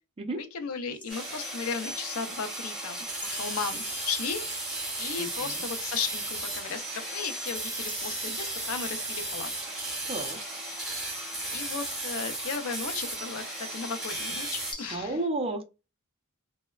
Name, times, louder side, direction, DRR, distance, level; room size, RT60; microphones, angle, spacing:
voice 1, 0.4-4.4 5.0-9.5 11.5-15.2, left 5 dB, 70° left, 0.5 m, -35 dB
sound 1, 0.9-1.9 3.2-4.4 4.7-6.8 7.2-9.0 10.0-10.7 11.0-11.9 14.7-15.0, left 2 dB, 20° left, 0.6 m, -49 dB
sound 2, 1.1-14.7, right 1 dB, ahead, 0.9 m, -35 dB
voice 2, 5.2-5.7 10.1-10.4 14.9-15.6, right 2 dB, 25° right, 0.4 m, -32 dB
3.1 x 2.1 x 2.2 m
head